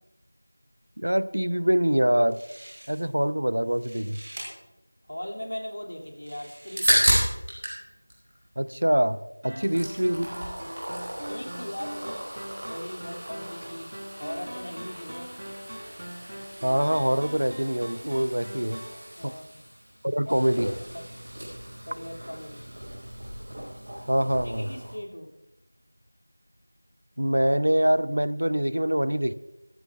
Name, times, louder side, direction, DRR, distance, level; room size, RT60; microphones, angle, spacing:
voice 1, 1.0-2.4 2.9-4.2 8.6-10.3 16.6-18.8 19.2-19.3 20.0-20.7 24.1-24.7 27.2-29.3, right 1 dB, 75° right, 16 dB, 0.6 m, -24 dB
sound 1, 2.0-2.1 2.3-3.2 3.6-4.5 5.2-5.3 6.0-7.5, right 1 dB, 20° right, 2.4 m, -46 dB
voice 2, 5.1-7.1 9.5-9.8 11.2-12.2 12.6-13.9 14.2-15.3 19.1-19.6 20.3-20.4 20.8-21.1 21.9-22.6 24.2-25.3, equal, 65° left, 1 dB, 2.5 m, -39 dB
sound 2, 6.8-7.8 8.1-9.1 9.4-24.9, equal, 35° right, 5.0 m, -33 dB
sound 3, 9.4-19.0, equal, 55° right, 3.7 m, -42 dB
17.5 x 14.5 x 2.4 m, 0.95 s
figure-of-eight pair, 180°, 0 cm